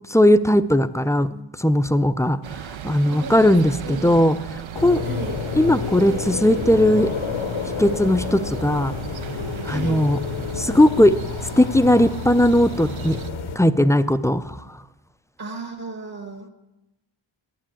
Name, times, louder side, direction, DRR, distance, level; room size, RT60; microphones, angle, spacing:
voice 1, 0.1-4.4 4.8-5.0 5.5-7.1 7.8-8.9 9.6-10.2 10.6-11.2 11.6-13.2 13.6-14.6, left 1 dB, 5° left, 13 dB, 0.4 m, -18 dB
sound 1, 2.4-13.3, right 9 dB, 70° right, 0.6 m, -37 dB
voice 2, 3.1-3.5 3.8-4.3 5.0-5.4 9.6-10.1 15.4-16.5, right 3 dB, 50° right, 3 dB, 1.7 m, -35 dB
sound 2, 4.7-13.6, left 5 dB, 75° left, 1.0 m, -29 dB
8.5 x 7.5 x 8.9 m, 0.98 s
cardioid pair, 50°, 49 cm